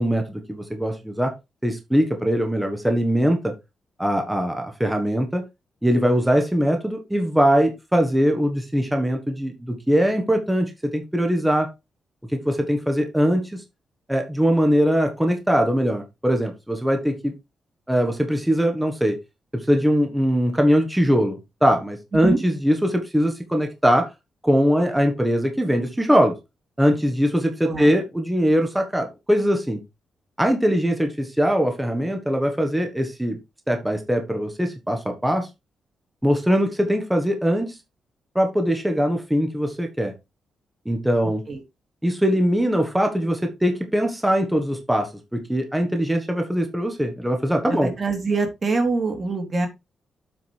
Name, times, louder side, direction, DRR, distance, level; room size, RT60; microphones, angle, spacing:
voice 1, 0.0-1.4 1.6-3.5 4.0-5.4 5.8-11.7 12.3-13.6 14.1-17.3 17.9-19.2 19.5-24.1 24.4-26.4 26.8-29.8 30.4-33.4 33.7-35.5 36.2-37.7 38.3-40.1 40.8-41.4 42.0-47.9, equal, 5° right, 4 dB, 1.5 m, -21 dB
voice 2, 47.7-49.7, right 3 dB, 35° right, 5 dB, 2.7 m, -24 dB
7.9 x 5.2 x 4.5 m, 0.23 s
wide cardioid pair, 145°, 0 cm